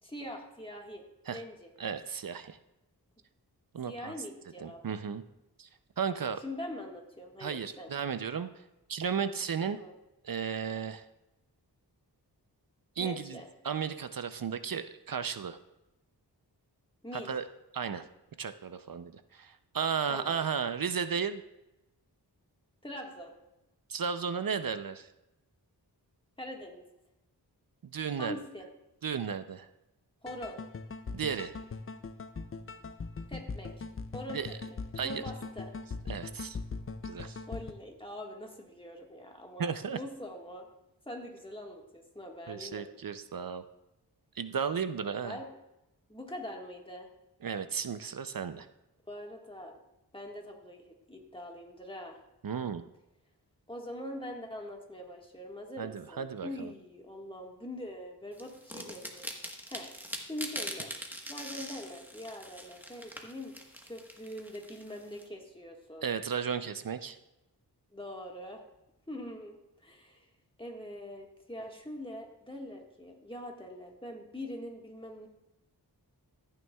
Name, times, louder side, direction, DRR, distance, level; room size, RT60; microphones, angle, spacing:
voice 1, 0.0-1.7 3.9-4.8 6.4-7.9 9.7-9.9 13.0-13.5 17.0-17.3 20.1-20.5 22.8-23.3 26.4-26.8 28.2-28.7 30.2-30.6 33.3-33.8 34.1-34.8 35.0-35.7 37.5-40.7 41.0-42.9 45.2-45.4 46.1-47.1 49.1-49.7 50.1-52.2 53.7-59.3 59.7-59.9 60.2-60.9 61.3-63.5 63.8-66.1 67.9-68.6 69.1-70.3 70.6-75.3, left 1 dB, 15° left, 1 dB, 1.6 m, -43 dB
voice 2, 1.8-2.6 3.7-4.1 4.6-5.2 5.6-5.7 6.0-6.4 7.4-8.5 8.9-9.8 10.2-11.0 13.0-13.4 13.6-15.6 17.1-17.4 17.7-18.1 18.4-21.4 23.9-25.1 27.8-28.4 29.0-29.7 31.1-31.5 34.3-34.6 35.0-35.2 36.1-36.6 37.0-37.4 39.6-40.0 42.5-43.6 44.4-45.4 47.4-48.7 52.4-52.8 55.8-56.7 66.0-67.2, right 6 dB, 55° right, 11 dB, 0.5 m, -34 dB
sound 1, 30.3-37.7, left 4 dB, 35° left, 0.5 m, -41 dB
sound 2, 58.4-65.2, equal, 5° right, 1.2 m, -43 dB
14.0 x 9.1 x 2.3 m, 0.93 s
wide cardioid pair, 80°, 41 cm